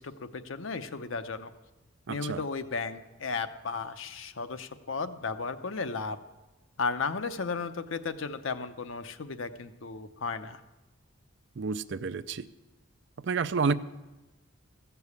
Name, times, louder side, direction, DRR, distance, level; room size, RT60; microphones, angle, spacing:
voice 1, 0.0-1.5 2.1-6.2 6.8-10.6, left 4 dB, 70° left, 9 dB, 0.7 m, -34 dB
voice 2, 2.1-2.4 11.6-12.4 13.2-13.7, right 5 dB, 55° right, 12 dB, 0.4 m, -29 dB
15.0 x 7.0 x 8.3 m, 1.1 s
head